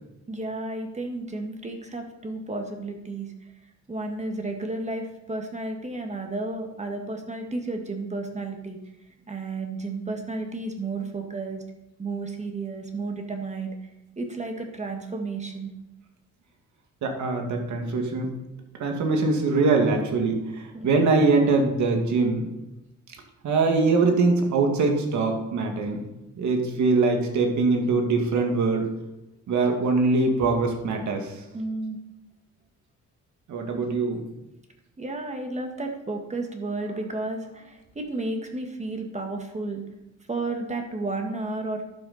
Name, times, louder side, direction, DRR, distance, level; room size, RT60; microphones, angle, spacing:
voice 1, 0.3-3.3 3.9-8.8 9.3-11.6 12.0-15.7 20.7-21.0 31.5-32.0 35.0-39.8 40.3-41.9, right 2 dB, 25° right, 4 dB, 1.9 m, -32 dB
voice 2, 17.0-18.3 18.8-22.4 23.4-26.0 26.4-28.9 29.5-31.3 33.5-34.2, right 3 dB, 70° right, 3 dB, 2.1 m, -23 dB
12.0 x 7.1 x 4.3 m, 0.95 s
cardioid pair, 90°, 30 cm